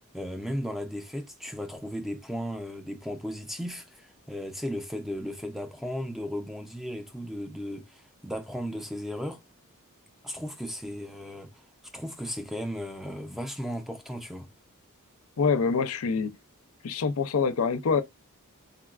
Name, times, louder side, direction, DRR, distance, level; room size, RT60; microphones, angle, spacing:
voice 1, 0.1-9.4 10.2-11.5 11.9-14.5, equal, ahead, 0.4 m, -35 dB
voice 2, 15.4-16.3 16.8-18.0, left 5 dB, 65° left, 0.5 m, -25 dB
3.8 x 2.2 x 2.3 m
head